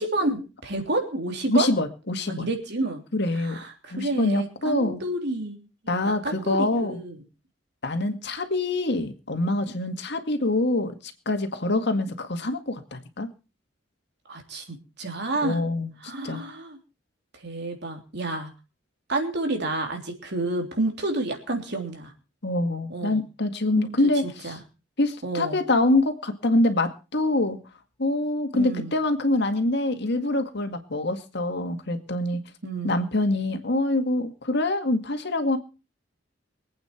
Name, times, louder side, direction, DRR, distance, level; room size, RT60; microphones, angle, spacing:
voice 1, 0.0-1.7 2.3-3.0 3.3-7.2 14.3-15.6 16.0-16.8 17.4-18.5 19.1-22.1 22.9-23.2 23.8-24.0 24.4-24.6 25.2-25.6 28.5-28.9 32.6-33.0, right 2 dB, 60° right, 4 dB, 3.3 m, -30 dB
voice 2, 1.5-2.5 3.1-3.6 3.9-5.0 5.9-7.0 7.8-13.3 15.4-15.9 16.2-16.5 22.4-24.5 25.0-27.6 28.0-32.4 32.8-35.6, left 2 dB, 65° left, 7 dB, 2.0 m, -25 dB
24.0 x 8.8 x 4.4 m, 0.33 s
head